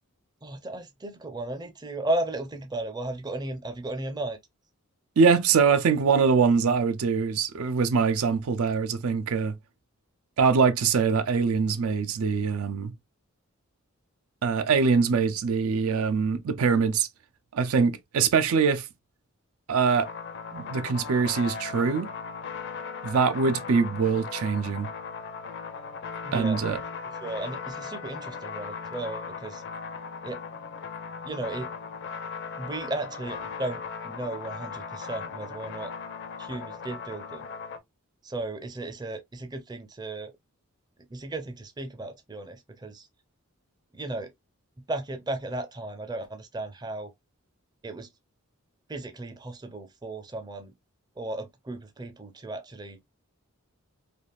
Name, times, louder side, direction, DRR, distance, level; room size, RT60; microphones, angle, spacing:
voice 1, 0.4-4.4 26.3-26.6 27.2-29.6 30.2-30.4 31.2-31.7 32.6-35.9 36.4-37.4 38.2-40.3 41.1-43.1 43.9-44.3 44.9-47.1 47.8-48.1 48.9-50.7 51.2-53.0, right 2 dB, 20° right, 0.5 m, -35 dB
voice 2, 5.2-9.6 10.4-12.9 14.4-17.1 17.5-18.9 19.7-20.1 20.5-22.1 23.0-24.9 26.3-26.8, right 5 dB, 70° right, 0.4 m, -23 dB
sound 1, 19.9-37.8, left 5 dB, 50° left, 0.5 m, -38 dB
3.4 x 2.4 x 2.3 m
head